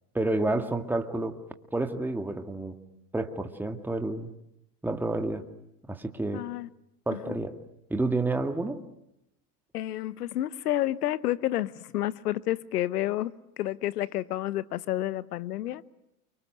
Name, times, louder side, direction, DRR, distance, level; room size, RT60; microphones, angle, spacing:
voice 1, 0.1-1.4 1.7-2.8 3.1-4.3 4.8-5.4 5.9-6.5 7.1-7.6 7.9-8.8, right 2 dB, 5° right, 2.0 m, -29 dB
voice 2, 6.3-6.7 7.1-7.4 9.7-13.3 13.6-15.8, left 14 dB, 85° left, 1.1 m, -30 dB
29.5 x 25.0 x 8.0 m
hypercardioid pair, 110°, 45 cm